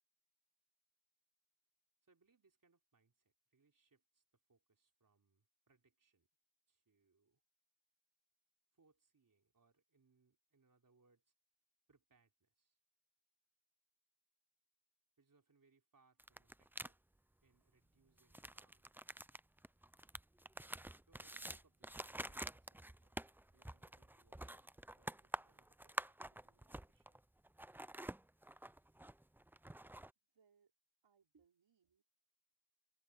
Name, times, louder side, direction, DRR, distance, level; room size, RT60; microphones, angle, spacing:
voice 1, 2.0-6.3 6.7-7.4 8.7-11.3 11.9-12.8 15.2-17.0 17.4-18.9 21.0-24.7 25.0-27.2 31.3-31.4, right 4 dB, 45° right, 3.3 m, -76 dB
sound 1, 16.2-16.9 18.2-27.2 27.4-30.1, right 1 dB, 5° right, 0.5 m, -48 dB
voice 2, 30.1-30.7 31.0-32.0, right 6 dB, 80° right, 5.4 m, -76 dB
cardioid pair, 45°, 45 cm